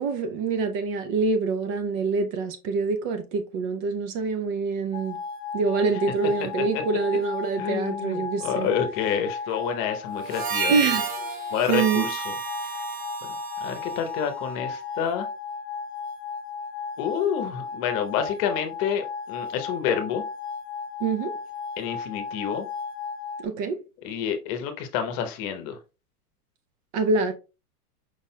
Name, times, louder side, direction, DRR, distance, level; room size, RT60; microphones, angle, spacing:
voice 1, 0.0-5.2 5.5-8.7 10.7-11.1 11.7-12.1 21.0-21.3 23.4-23.8 26.9-27.3, right 4 dB, 40° right, 0.7 m, -25 dB
sound 1, 4.9-23.4, left 5 dB, 20° left, 0.6 m, -35 dB
voice 2, 7.6-10.8 11.5-12.3 12.7-12.8 13.6-15.3 17.0-20.2 21.8-22.6 24.0-25.8, left 8 dB, 45° left, 0.9 m, -28 dB
Harmonica, 10.2-14.8, right 6 dB, 20° right, 0.3 m, -32 dB
4.9 x 4.0 x 2.2 m
hypercardioid pair, 110°, 46 cm